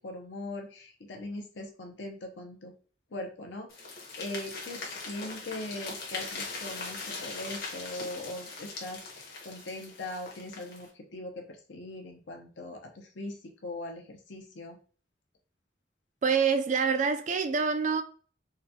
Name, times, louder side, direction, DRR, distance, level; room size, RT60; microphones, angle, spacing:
voice 1, 0.0-2.7 3.1-14.8, left 2 dB, 70° left, 0.7 m, -41 dB
sound 1, 3.7-10.9, left 3 dB, 50° left, 1.0 m, -40 dB
voice 2, 16.2-18.0, right 5 dB, 40° right, 0.3 m, -26 dB
3.8 x 2.2 x 2.7 m
head